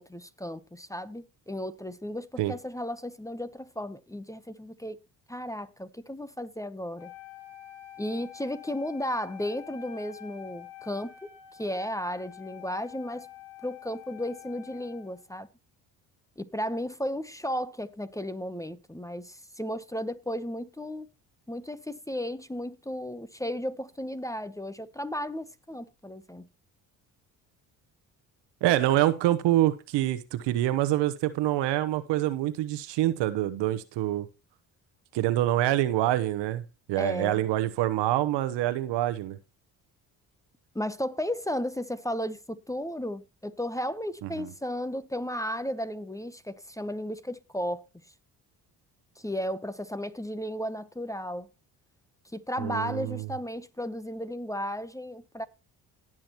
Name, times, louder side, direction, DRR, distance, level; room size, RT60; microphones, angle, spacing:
voice 1, 0.0-5.0 5.3-7.1 8.0-13.3 13.6-15.5 16.4-21.1 21.5-26.5 37.0-37.4 40.7-47.8 49.2-51.5 52.3-55.4, equal, 5° left, 0.9 m, -34 dB
Wind instrument woodwind instrument, 7.0-15.2, left 11 dB, 70° left, 3.1 m, -47 dB
voice 2, 28.6-34.3 35.1-36.6 36.9-39.4 44.2-44.5 52.6-53.3, right 14 dB, 75° right, 1.1 m, -26 dB
18.0 x 6.3 x 3.0 m
supercardioid pair, 65°, 43 cm